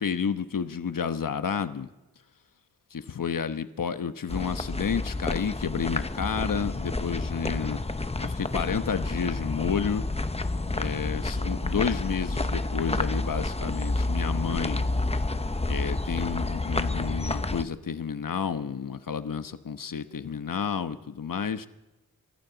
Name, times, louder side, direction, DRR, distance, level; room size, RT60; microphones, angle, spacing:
voice 1, 0.0-1.9 2.9-7.8 8.2-10.0 10.7-14.9 15.7-21.7, left 6 dB, 65° left, 10 dB, 1.1 m, -30 dB
sound 1, 4.3-17.6, left 2 dB, 15° left, 0.8 m, -29 dB
24.0 x 14.0 x 4.0 m, 1.0 s
cardioid pair, 60°, 36 cm